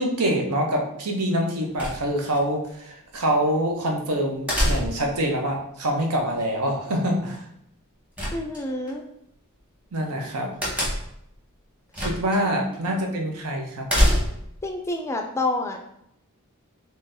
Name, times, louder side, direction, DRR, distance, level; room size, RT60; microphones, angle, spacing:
voice 1, 0.0-7.4 9.9-10.5 12.0-14.0, right 1 dB, 85° right, 1 dB, 0.8 m, -25 dB
sound 1, 1.8-2.4 4.5-5.2 8.2-8.9 10.6-11.2 11.9-12.4 12.7-12.8 13.9-14.6, equal, 5° right, 0.9 m, -24 dB
voice 2, 8.3-9.1 12.8-13.0 14.6-15.8, left 2 dB, 10° left, 3 dB, 0.3 m, -28 dB
3.8 x 3.1 x 2.7 m, 0.74 s
head